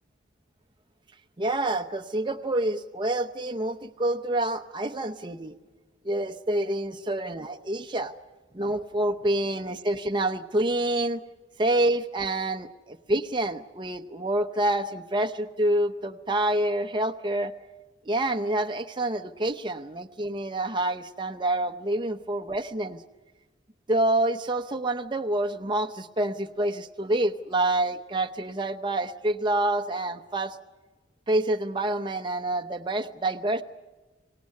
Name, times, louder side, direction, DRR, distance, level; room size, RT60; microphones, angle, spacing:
voice 1, 1.4-5.5 6.0-8.1 8.5-11.2 11.6-17.5 18.1-23.0 23.9-30.6 31.3-33.6, right 1 dB, 25° right, 6 dB, 0.8 m, -27 dB
25.0 x 18.0 x 9.6 m, 1.2 s
head